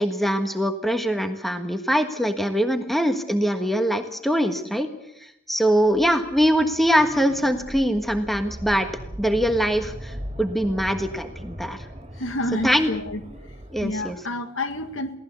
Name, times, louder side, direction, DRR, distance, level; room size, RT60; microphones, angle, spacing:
voice 1, 0.0-4.9 5.2-8.9 9.2-11.8 12.6-12.9 13.7-14.2, equal, ahead, 7 dB, 1.5 m, -23 dB
sound 1, 5.9-14.2, equal, 30° right, 3.0 m, -39 dB
voice 2, 12.1-13.6 13.8-15.1, left 1 dB, 70° left, 8 dB, 2.0 m, -29 dB
23.0 x 17.5 x 6.9 m, 0.78 s
head